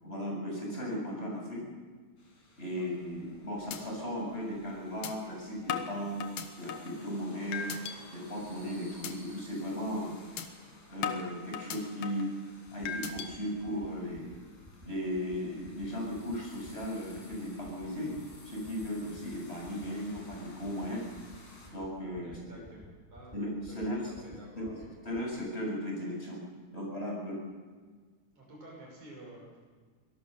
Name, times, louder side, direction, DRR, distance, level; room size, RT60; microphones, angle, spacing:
voice 1, 0.0-1.6 2.6-6.3 6.6-7.7 8.1-10.1 10.9-12.3 12.7-14.3 14.8-18.2 18.4-21.0 21.7-22.4 23.3-24.1 24.6-24.8 25.1-26.4 26.7-27.4, equal, 20° left, -1 dB, 7.3 m, -36 dB
sound 1, 2.2-21.7, left 2 dB, 60° left, 6.0 m, -56 dB
sound 2, 3.0-3.3 3.7-3.8 4.2-4.3 5.0-5.1 5.7-7.0 7.5-8.0 8.4-8.6 9.0-9.1 9.5-9.7 10.4-10.5 11.0-12.3 12.9-13.3, left 8 dB, 85° left, 2.8 m, -37 dB
sound 3, 12.7-12.9 13.1-13.4 13.6-13.9 14.1-14.4 14.6-14.9 15.1-15.4 15.6-15.9 16.1-16.4 16.6-16.9 17.1-17.4 17.6-17.9 18.1-18.4 18.6-18.9 19.1-19.4 19.6-19.9 20.1-20.4 20.6-20.9 21.1-21.4 21.6-21.9 22.1-22.4 22.6-22.9 23.1-23.4 23.6-23.9 24.1-24.4 24.6-24.9 25.1-25.3, right 1 dB, 5° right, 2.7 m, -52 dB
voice 2, 22.2-23.4 23.7-23.8 24.2-24.9 28.3-29.6, right 1 dB, 70° right, -3 dB, 7.7 m, -51 dB
25.0 x 18.0 x 6.8 m, 1.5 s
omnidirectional pair, 3.5 m